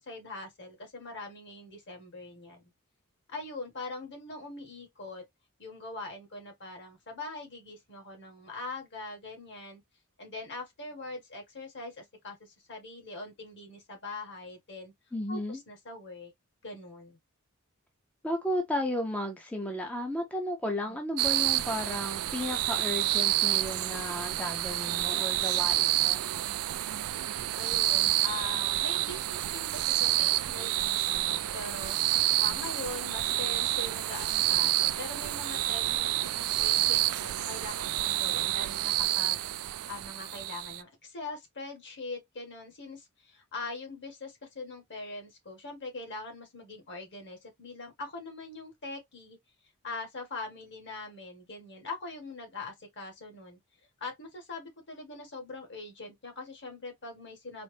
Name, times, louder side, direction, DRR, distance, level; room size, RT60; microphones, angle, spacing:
voice 1, 0.0-2.6 3.3-5.2 5.6-9.8 10.2-14.9 15.3-15.4 15.7-16.3 16.6-17.2 20.9-21.0 27.5-49.4 49.8-53.6 54.0-57.6, left 3 dB, 55° left, 1.6 m, -42 dB
voice 2, 15.1-15.6 18.2-26.2, left 1 dB, 5° left, 0.5 m, -34 dB
sound 1, 21.2-40.8, right 15 dB, 70° right, 0.3 m, -29 dB
4.1 x 2.0 x 3.2 m
head